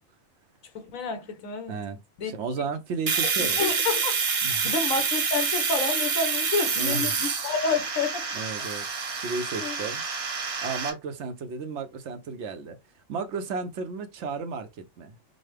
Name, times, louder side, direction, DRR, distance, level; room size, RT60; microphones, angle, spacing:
voice 1, 0.7-1.8 2.2-2.3 3.4-8.3 9.6-9.8, left 4 dB, 75° left, 1.2 m, -29 dB
voice 2, 1.7-3.6 4.4-4.7 6.8-7.2 8.3-8.9 9.2-10.0 10.6-12.8 13.1-15.2, right 4 dB, 65° right, 0.8 m, -33 dB
Domestic sounds home sounds, 3.1-10.9, right 5 dB, 85° right, 1.4 m, -27 dB
5.2 x 2.0 x 3.2 m
omnidirectional pair, 1.4 m